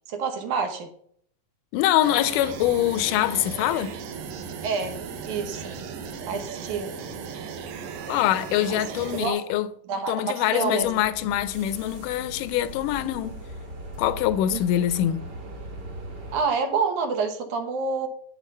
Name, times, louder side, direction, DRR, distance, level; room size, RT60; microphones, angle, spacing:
voice 1, 0.1-0.9 4.6-5.8 6.3-6.9 8.7-8.8 9.2-9.4 9.9-10.9 14.5-14.6 16.3-18.1, right 5 dB, 70° right, 2.4 m, -28 dB
voice 2, 1.7-3.9 8.1-9.7 10.1-13.4 14.0-15.2, left 12 dB, 80° left, 2.2 m, -24 dB
sound 1, 2.0-9.3, right 6 dB, 85° right, 2.8 m, -36 dB
sound 2, 10.8-16.4, right 1 dB, 35° right, 2.4 m, -40 dB
8.8 x 8.3 x 5.4 m
omnidirectional pair, 3.9 m